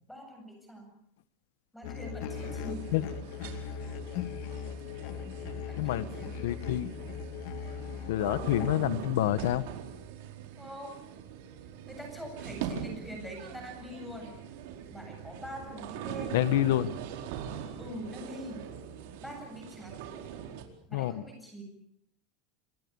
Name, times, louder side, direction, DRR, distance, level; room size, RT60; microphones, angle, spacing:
voice 1, 0.1-0.9 1.7-2.9 5.7-6.4 10.6-11.2 11.8-14.3 14.9-16.4 17.8-18.6 19.2-20.0 20.9-21.6, equal, ahead, 3 dB, 7.8 m, -44 dB
sound 1, 1.8-8.7, left 7 dB, 50° left, 2.1 m, -39 dB
sound 2, 2.3-20.6, right 8 dB, 65° right, 4.6 m, -42 dB
voice 2, 5.8-6.1 6.4-6.9 8.1-9.6 16.3-16.9 20.9-21.2, left 14 dB, 85° left, 14 dB, 1.2 m, -27 dB
28.0 x 20.5 x 7.0 m, 0.71 s
supercardioid pair, 175°, 0 cm